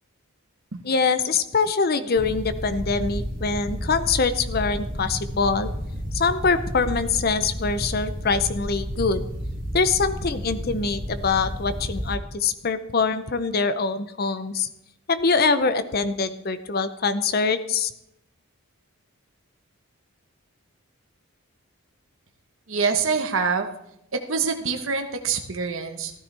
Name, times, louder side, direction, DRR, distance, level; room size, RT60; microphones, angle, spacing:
voice 1, 0.8-5.7 6.1-9.2 9.7-14.7 15.1-17.9, left 4 dB, 45° left, 12 dB, 0.6 m, -24 dB
sound 1, 2.2-12.1, equal, 40° right, 2.1 m, -32 dB
voice 2, 22.7-23.7 24.3-26.1, right 5 dB, 65° right, 5 dB, 1.1 m, -25 dB
14.5 x 13.0 x 3.4 m, 0.79 s
head